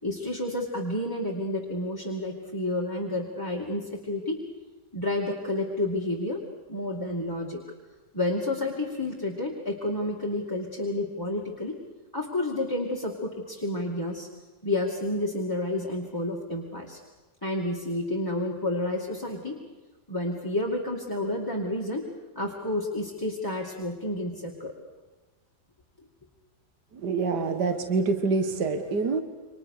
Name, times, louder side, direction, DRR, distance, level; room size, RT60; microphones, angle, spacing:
voice 1, 0.0-4.4 4.9-6.4 6.7-7.6 8.1-11.8 12.1-14.3 14.6-17.0 17.4-19.6 20.1-22.1 22.3-24.7, left 1 dB, 10° left, -1 dB, 2.5 m, -30 dB
voice 2, 26.9-29.2, right 4 dB, 70° right, 8 dB, 2.2 m, -26 dB
29.0 x 25.0 x 6.8 m, 1.2 s
omnidirectional pair, 1.8 m